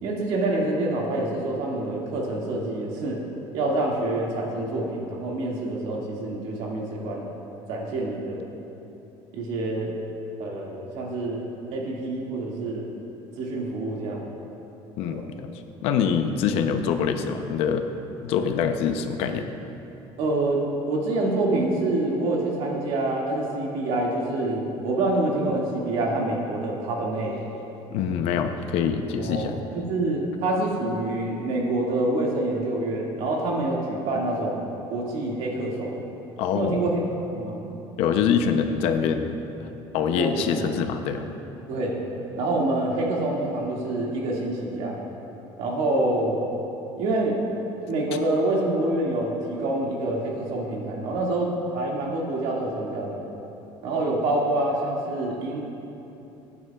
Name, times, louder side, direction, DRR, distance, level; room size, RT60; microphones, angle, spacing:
voice 1, 0.0-3.2 3.5-7.3 7.7-8.5 9.3-9.9 10.4-11.4 11.7-12.9 13.4-14.3 15.1-15.2 20.2-27.5 29.2-36.0 36.5-37.0 37.3-37.6 40.2-40.7 41.7-42.0 42.4-45.0 45.6-46.4 47.0-47.4 47.9-53.3 53.8-55.6, right 2 dB, 65° right, -2 dB, 2.1 m, -26 dB
voice 2, 15.0-15.5 15.8-17.9 18.2-19.5 27.9-29.5 36.4-36.8 38.0-39.4 39.9-41.2, left 7 dB, 65° left, 7 dB, 0.7 m, -24 dB
21.5 x 9.6 x 2.4 m, 2.9 s
cardioid pair, 175°, 11 cm